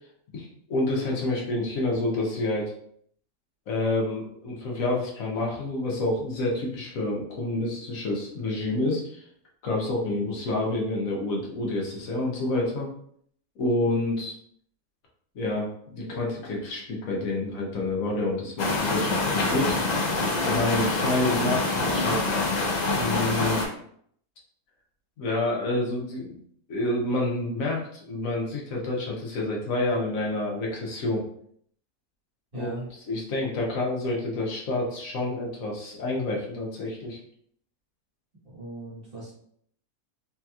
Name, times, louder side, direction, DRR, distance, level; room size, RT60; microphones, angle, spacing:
voice 1, 0.3-2.7 3.7-9.2 9.6-12.9 13.6-14.4 15.3-19.9 20.4-22.4 23.0-23.6 25.2-26.3 26.7-31.2 32.5-32.7 33.1-37.2, left 2 dB, 70° left, -2 dB, 1.2 m, -28 dB
sound 1, 18.6-23.7, left 3 dB, 90° left, 0.3 m, -25 dB
voice 2, 32.5-32.9 38.4-39.3, right 1 dB, 40° right, -8 dB, 1.8 m, -38 dB
3.3 x 2.8 x 2.3 m, 0.64 s
omnidirectional pair, 1.5 m